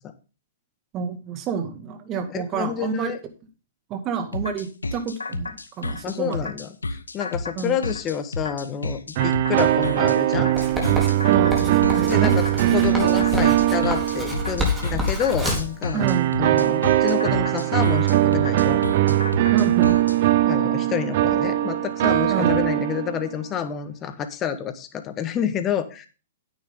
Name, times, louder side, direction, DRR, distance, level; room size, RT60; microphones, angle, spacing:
voice 1, 0.9-3.1 3.9-6.5 7.6-7.8 11.3-12.7 15.9-16.3 19.1-19.2 19.5-20.0 22.3-22.6, right 6 dB, 30° right, 8 dB, 2.0 m, -29 dB
voice 2, 2.3-3.2 6.0-6.7 7.1-10.5 12.0-12.4 12.7-16.1 16.4-18.8 20.4-26.1, left 9 dB, 25° left, 10 dB, 1.4 m, -28 dB
sound 1, 4.3-20.2, left 2 dB, 85° left, 0.9 m, -31 dB
sound 2, 9.2-15.0 16.0-23.4, right 14 dB, 50° right, 0.6 m, -21 dB
Writing, 10.6-15.8, left 1 dB, 10° right, 3.9 m, -28 dB
9.8 x 9.5 x 3.8 m, 0.33 s
figure-of-eight pair, 115°, 0 cm